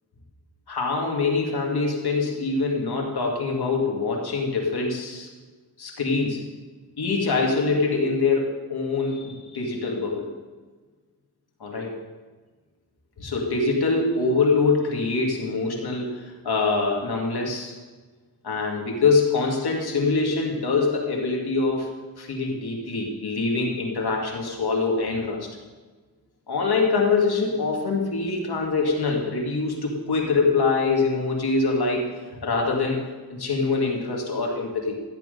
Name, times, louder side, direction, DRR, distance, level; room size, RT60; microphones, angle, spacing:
voice 1, 0.7-5.3 5.8-6.4 7.0-10.3 11.6-11.9 13.2-17.7 18.4-21.9 22.2-25.5 26.5-32.1 32.4-33.0 33.3-35.0, left 4 dB, 80° left, 0 dB, 2.3 m, -24 dB
14.0 x 8.4 x 5.3 m, 1.4 s
cardioid pair, 50°, 38 cm